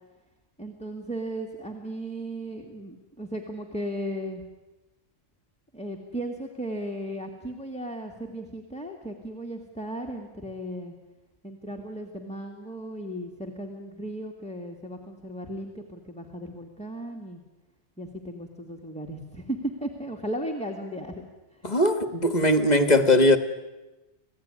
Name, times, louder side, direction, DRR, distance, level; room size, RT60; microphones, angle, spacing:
voice 1, 0.6-4.4 5.7-10.9 11.4-17.4 18.0-21.7, right 1 dB, 5° left, 2.0 m, -36 dB
voice 2, 21.6-23.4, left 1 dB, 35° left, 1.6 m, -20 dB
27.0 x 17.0 x 9.8 m
omnidirectional pair, 1.2 m